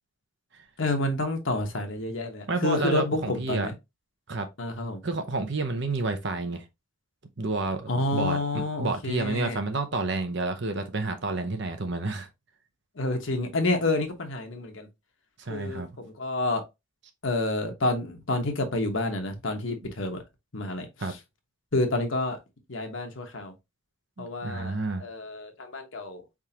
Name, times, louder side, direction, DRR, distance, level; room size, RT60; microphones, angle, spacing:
voice 1, 0.8-3.7 4.6-5.0 7.9-9.6 13.0-14.9 15.5-16.6 17.2-20.2 20.5-20.9 21.7-22.4 22.7-23.5 24.2-26.2, left 2 dB, 65° left, 1.1 m, -29 dB
voice 2, 2.5-3.7 4.3-4.5 5.0-6.6 7.4-12.3 15.4-15.9 21.0-21.1 24.2-25.1, right 3 dB, 55° right, 0.8 m, -30 dB
4.7 x 3.7 x 2.8 m
head